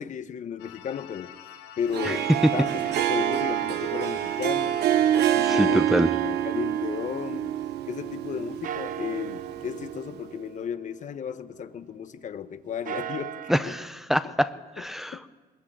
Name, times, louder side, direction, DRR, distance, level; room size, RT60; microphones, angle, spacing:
voice 1, 0.0-1.3 1.8-2.7 3.1-4.8 5.1-7.5 7.9-13.7 14.2-14.3 14.8-14.9 15.1-15.3, left 8 dB, 45° left, 1.2 m, -34 dB
sound 1, 0.6-5.7, left 11 dB, 90° left, 1.8 m, -46 dB
Harp, 1.9-10.1, right 11 dB, 75° right, 1.1 m, -27 dB
voice 2, 5.4-6.1 13.5-15.3, equal, ahead, 0.7 m, -25 dB
sound 2, 7.3-8.2 8.6-12.2 12.7-13.9, right 10 dB, 50° right, 0.8 m, -40 dB
21.5 x 20.5 x 8.9 m
cardioid pair, 110°, 17 cm